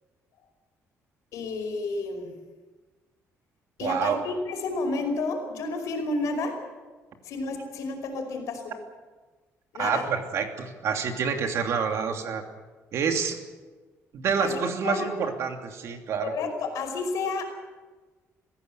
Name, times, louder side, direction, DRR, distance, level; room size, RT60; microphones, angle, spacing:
voice 1, 1.3-2.3 3.8-6.6 7.2-8.7 9.7-10.1 14.4-15.1 16.2-17.4, left 3 dB, 80° left, 4 dB, 5.2 m, -31 dB
voice 2, 3.8-4.2 9.8-12.4 12.9-13.4 14.1-16.3, right 6 dB, 60° right, 4 dB, 2.9 m, -27 dB
25.5 x 16.0 x 8.1 m, 1.3 s
cardioid pair, 160°, 5 cm